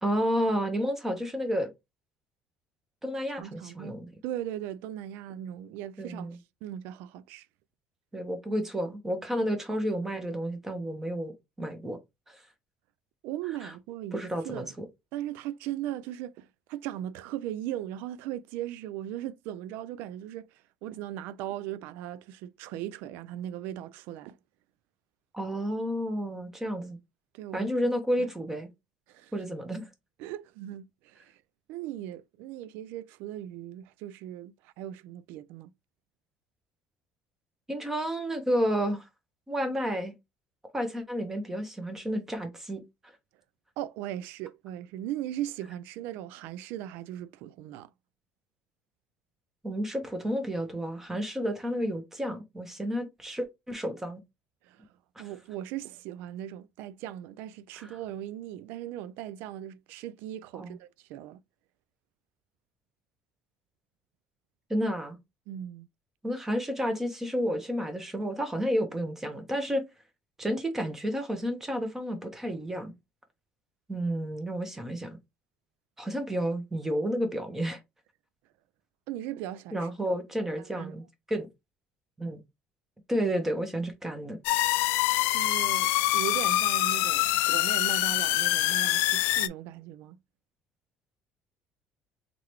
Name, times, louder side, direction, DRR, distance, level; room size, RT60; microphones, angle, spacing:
voice 1, 0.0-1.7 3.0-4.1 6.0-6.4 8.1-12.0 12.3-12.4 13.6-13.7 14.1-14.9 25.3-27.0 27.5-28.7 29.3-29.9 37.7-39.1 39.5-40.1 40.7-43.1 49.6-54.2 55.2-55.3 57.7-58.0 60.5-60.8 64.7-65.2 66.2-69.8 70.4-72.9 73.9-75.2 76.0-77.8 79.7-81.0 81.3-81.5 82.2-82.4 83.1-84.4, equal, 10° right, 0.9 m, -31 dB
voice 2, 3.4-4.0 4.2-7.5 13.2-14.7 15.1-24.4 27.3-27.9 28.2-28.3 29.1-29.3 30.2-31.4 31.7-35.7 43.8-47.9 54.6-54.9 55.2-61.4 65.5-65.9 79.1-80.2 80.6-81.0 85.3-90.2, right 12 dB, 85° right, 0.3 m, -38 dB
sound 1, 84.4-89.5, left 16 dB, 85° left, 0.4 m, -25 dB
3.8 x 3.2 x 3.1 m
cardioid pair, 150°, 3 cm